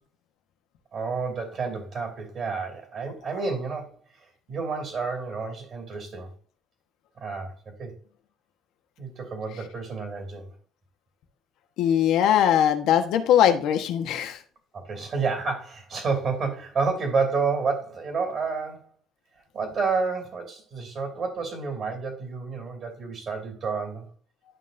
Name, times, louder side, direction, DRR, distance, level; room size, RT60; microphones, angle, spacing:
voice 1, 0.9-6.3 7.2-7.9 9.0-10.5 14.7-18.9 19.5-24.1, right 4 dB, 45° right, 5 dB, 2.8 m, -30 dB
voice 2, 11.8-14.4, left 10 dB, 75° left, 7 dB, 1.1 m, -21 dB
11.0 x 5.6 x 2.6 m, 0.44 s
cardioid pair, 115°, 0 cm